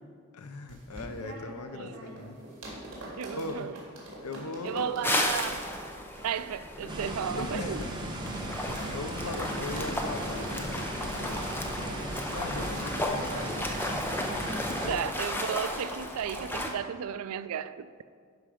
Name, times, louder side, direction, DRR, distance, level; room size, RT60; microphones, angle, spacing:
voice 1, 0.3-2.4 3.3-3.7 4.2-4.9 7.4-8.6 8.9-11.5 12.3-13.8 14.8-15.0, left 3 dB, 90° left, 0.7 m, -39 dB
sound 1, 0.7-8.9 9.2-9.4 9.7-9.9 10.2-10.4 10.8-10.9 11.3-11.5 11.8-11.9 12.3-12.4 12.8-13.0 13.3-13.5 13.8-13.9 14.3-14.5 14.8-15.0 15.3-15.5 15.8-16.0 16.4-16.6, right 1 dB, 60° right, 2.5 m, -44 dB
voice 2, 1.5-2.0 3.2-3.8 4.6-5.7 6.2-7.8 14.9-17.9, right 8 dB, 80° right, 0.3 m, -34 dB
sound 2, 5.0-16.7, left 1 dB, 10° left, 0.5 m, -34 dB
sound 3, 6.9-15.0, right 1 dB, 20° right, 0.8 m, -37 dB
11.0 x 4.9 x 5.0 m
head